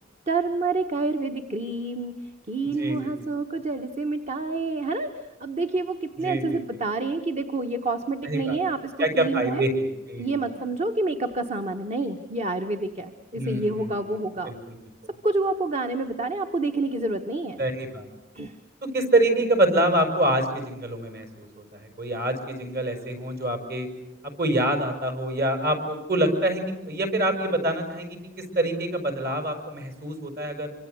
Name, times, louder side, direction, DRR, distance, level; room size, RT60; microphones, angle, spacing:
voice 1, 0.3-9.7 10.2-14.5 15.2-17.6 18.3-18.6, right 3 dB, 35° right, 6 dB, 1.3 m, -28 dB
voice 2, 2.6-3.1 6.2-6.6 8.2-8.6 9.0-10.4 13.3-14.0 14.5-14.8 17.6-18.1 18.8-21.6 22.0-23.9 24.4-30.7, right 1 dB, 55° right, 7 dB, 5.5 m, -26 dB
26.5 x 25.5 x 8.0 m, 0.98 s
head